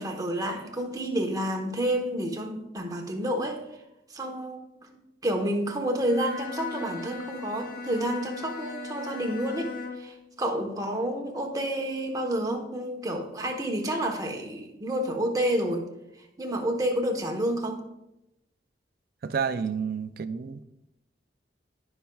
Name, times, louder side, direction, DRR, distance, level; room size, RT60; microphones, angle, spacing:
voice 1, 0.0-3.6 4.1-4.9 5.2-15.9 16.4-17.8, right 1 dB, 20° right, 1.0 m, -29 dB
Bowed string instrument, 6.0-10.2, left 4 dB, 55° left, 1.0 m, -38 dB
voice 2, 19.2-20.6, right 6 dB, 55° right, 0.4 m, -30 dB
15.5 x 5.8 x 2.3 m
head